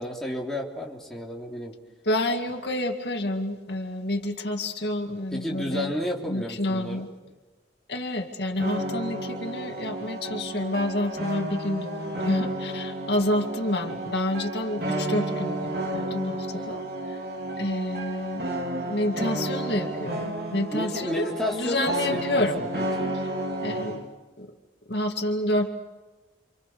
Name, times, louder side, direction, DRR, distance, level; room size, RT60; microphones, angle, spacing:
voice 1, 0.0-1.7 5.3-7.1 20.7-23.2, left 1 dB, ahead, -3 dB, 3.6 m, -32 dB
voice 2, 2.0-5.9 6.2-7.1 7.9-16.8 17.1-17.2 17.6-22.6 23.6-24.1 24.4-24.5 24.9-25.7, left 1 dB, 65° left, 4 dB, 2.2 m, -29 dB
sound 1, 8.6-24.0, right 1 dB, 60° right, 3.4 m, -32 dB
29.5 x 27.0 x 6.8 m, 1.2 s
head